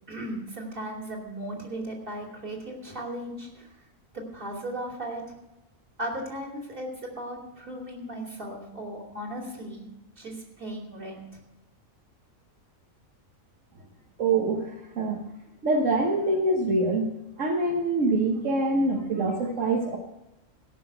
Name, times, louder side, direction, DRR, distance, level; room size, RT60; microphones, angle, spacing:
voice 1, 0.1-3.7 4.1-5.3 6.0-9.8 10.2-11.2, right 1 dB, 40° right, 0 dB, 2.9 m, -36 dB
voice 2, 14.2-15.2 15.6-17.1 17.4-20.0, right 2 dB, 65° right, 0 dB, 1.6 m, -25 dB
16.5 x 6.0 x 7.8 m, 0.93 s
omnidirectional pair, 1.4 m